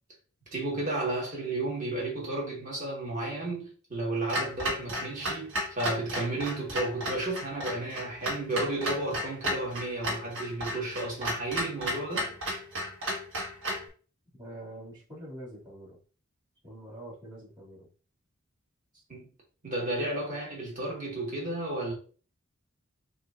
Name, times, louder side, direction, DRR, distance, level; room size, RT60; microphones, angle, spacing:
voice 1, 0.5-12.4 19.1-19.3 19.6-21.9, right 2 dB, 40° right, 1.8 m, -33 dB
Clock, 4.3-13.9, equal, 70° right, 1.6 m, -33 dB
voice 2, 14.4-16.0 16.6-17.9, right 1 dB, 20° right, 2.4 m, -45 dB
6.4 x 2.7 x 2.6 m
head